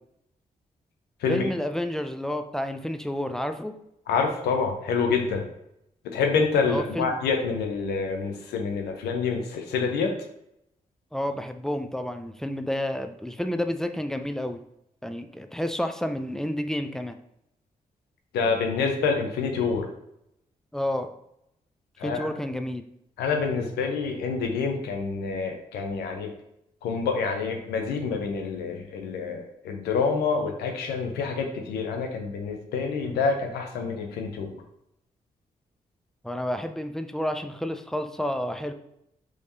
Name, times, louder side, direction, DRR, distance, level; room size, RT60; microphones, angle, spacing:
voice 1, 1.3-3.7 6.7-7.2 11.1-14.6 15.0-17.2 20.7-21.1 22.0-22.8 36.2-38.7, left 1 dB, 5° left, 7 dB, 0.4 m, -30 dB
voice 2, 4.1-5.4 6.1-10.1 18.3-19.9 22.0-22.3 23.2-26.3 26.8-34.5, left 5 dB, 90° left, 3 dB, 0.6 m, -27 dB
3.5 x 3.1 x 2.7 m, 0.80 s
supercardioid pair, 45°, 16 cm